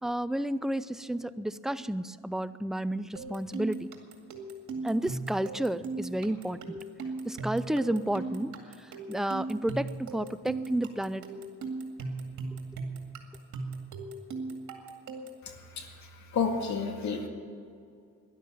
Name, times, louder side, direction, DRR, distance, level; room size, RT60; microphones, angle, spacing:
voice 1, 0.0-3.9 4.8-6.8 7.2-8.5 8.8-11.2, right 1 dB, ahead, 13 dB, 0.5 m, -31 dB
sound 1, 3.2-15.5, right 3 dB, 65° right, 2.3 m, -38 dB
voice 2, 16.3-17.3, left 5 dB, 65° left, 4 dB, 2.0 m, -29 dB
12.5 x 11.5 x 9.1 m, 2.4 s
cardioid pair, 90°, 30 cm